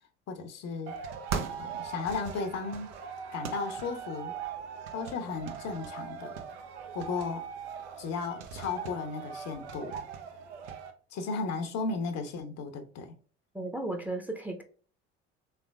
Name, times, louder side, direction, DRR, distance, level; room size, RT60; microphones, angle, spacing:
voice 1, 0.3-0.9 1.6-2.9 3.3-4.3 4.9-6.3 6.9-7.4 8.0-10.0 11.1-13.1, left 4 dB, 50° left, 0.9 m, -35 dB
sound 1, 0.9-10.9, right 6 dB, 70° right, 0.7 m, -39 dB
voice 2, 13.5-14.6, right 2 dB, 5° right, 0.7 m, -34 dB
3.7 x 3.4 x 2.2 m
figure-of-eight pair, 55°, 35 cm